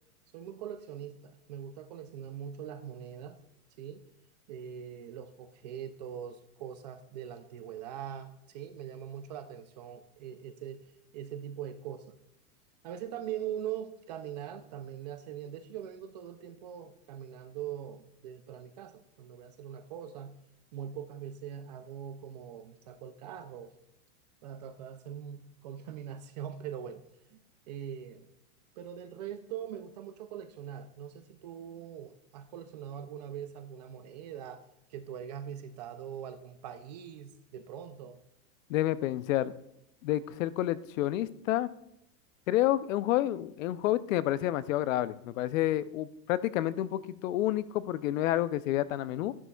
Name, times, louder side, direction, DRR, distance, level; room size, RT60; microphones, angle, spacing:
voice 1, 0.3-3.4 3.8-4.0 4.5-10.8 11.1-12.2 12.8-20.4 20.7-23.7 24.4-27.0 27.3-28.3 28.8-38.2, right 9 dB, 30° right, 10 dB, 0.4 m, -42 dB
voice 2, 38.7-39.5 40.0-41.7 42.5-49.3, left 14 dB, 60° left, 16 dB, 0.6 m, -29 dB
13.0 x 11.0 x 2.3 m, 0.82 s
supercardioid pair, 155°, 44 cm